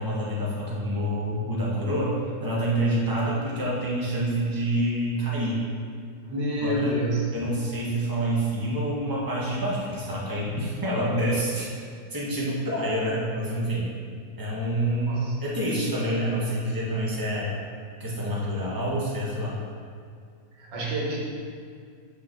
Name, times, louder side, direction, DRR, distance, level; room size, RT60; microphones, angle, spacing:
voice 1, 0.0-5.6 6.6-6.9 7.3-11.7 12.1-13.9 14.4-17.5 18.0-19.6, right 1 dB, 10° right, -6 dB, 1.6 m, -27 dB
voice 2, 6.3-7.3 15.1-15.4 20.6-21.2, right 1 dB, 90° right, -3 dB, 2.1 m, -27 dB
6.4 x 5.8 x 6.1 m, 2.2 s
omnidirectional pair, 1.8 m